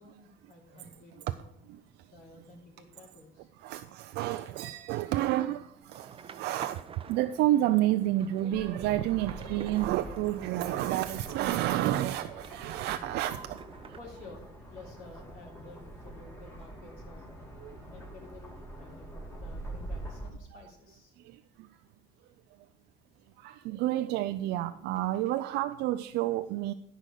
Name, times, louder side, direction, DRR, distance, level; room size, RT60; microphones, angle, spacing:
voice 1, 0.0-1.5 2.1-3.5 14.0-17.3 17.9-21.1, left 3 dB, 60° left, 3.4 m, -52 dB
voice 2, 3.6-6.8 7.1-13.6 17.6-17.8 20.5-20.6 21.3-21.4 23.4-26.7, right 14 dB, 85° right, 0.4 m, -30 dB
sound 1, 5.9-14.0, right 7 dB, 30° right, 0.5 m, -48 dB
sound 2, 8.5-20.3, right 1 dB, 15° left, 2.5 m, -45 dB
10.0 x 5.2 x 6.6 m
cardioid pair, 110°, 17 cm